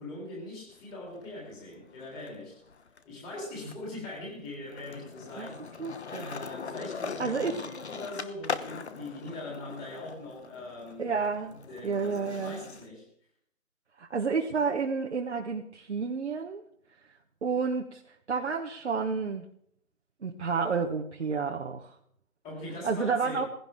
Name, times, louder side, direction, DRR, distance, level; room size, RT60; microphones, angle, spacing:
voice 1, 0.0-2.6 3.0-5.6 6.1-11.2 11.5-13.1 22.4-23.5, left 2 dB, 10° left, 3.3 m, -41 dB
Skateboard, 0.7-2.3 2.6-12.9, left 5 dB, 50° left, 1.0 m, -41 dB
voice 2, 5.8-6.3 7.2-7.6 11.0-11.5 11.8-12.6 14.0-16.6 17.4-18.0 18.3-19.5 20.2-21.9 22.8-23.5, right 5 dB, 50° right, 1.4 m, -30 dB
18.5 x 16.0 x 3.6 m
figure-of-eight pair, 160°, 43 cm